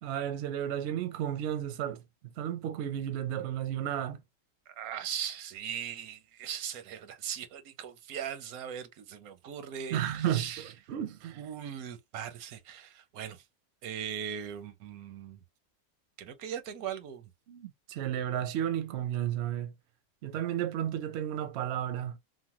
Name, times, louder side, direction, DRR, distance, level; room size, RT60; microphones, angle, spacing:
voice 1, 0.0-2.0 2.4-4.2 9.9-11.4 17.5-19.7 20.2-22.2, right 10 dB, 65° right, 0.7 m, -33 dB
voice 2, 4.8-10.6 11.4-13.4 13.8-15.4 16.2-17.3, right 9 dB, 85° right, 1.1 m, -39 dB
3.0 x 2.0 x 2.8 m
omnidirectional pair, 1.5 m